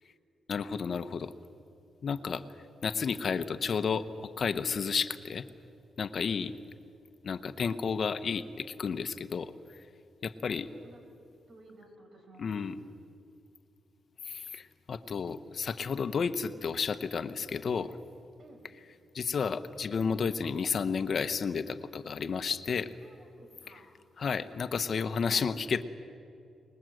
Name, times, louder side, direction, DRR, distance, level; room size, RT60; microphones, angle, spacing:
voice 1, 0.5-1.3 2.0-2.4 2.8-5.5 6.0-6.5 7.2-9.5 10.2-10.7 12.4-12.7 14.2-18.0 19.1-22.9 24.2-25.8, left 6 dB, 55° left, 11 dB, 1.0 m, -32 dB
voice 2, 10.6-11.0 11.5-13.0 18.4-18.7 23.0-23.9, right 1 dB, 55° right, 4 dB, 5.5 m, -55 dB
25.5 x 20.5 x 7.9 m, 2.5 s
cardioid pair, 85°, 0 cm